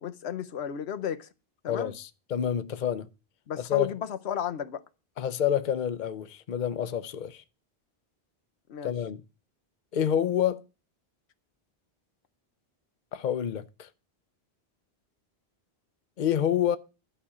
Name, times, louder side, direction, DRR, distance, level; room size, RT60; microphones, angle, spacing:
voice 1, 0.0-1.3 1.6-1.9 3.5-4.8 8.7-8.9, left 8 dB, 90° left, 1.0 m, -33 dB
voice 2, 1.7-3.1 3.6-3.9 5.2-7.4 8.8-9.2 9.9-10.6 13.1-13.9 16.2-16.8, left 9 dB, 50° left, 0.8 m, -28 dB
12.5 x 5.2 x 8.6 m
omnidirectional pair, 1.1 m